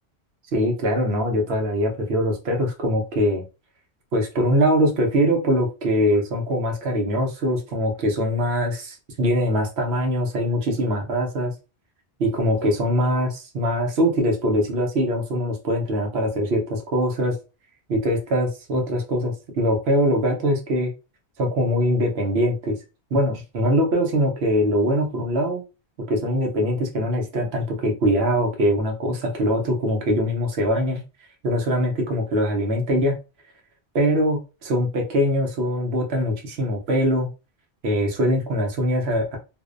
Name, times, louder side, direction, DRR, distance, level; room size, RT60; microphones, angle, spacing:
voice 1, 0.5-3.4 4.1-11.5 12.2-17.4 17.9-20.9 21.4-22.7 23.1-25.6 26.1-31.0 31.4-33.2 33.9-37.3 37.8-39.4, equal, 70° right, 2 dB, 0.9 m, -22 dB
2.5 x 2.0 x 2.4 m, 0.31 s
omnidirectional pair, 1.1 m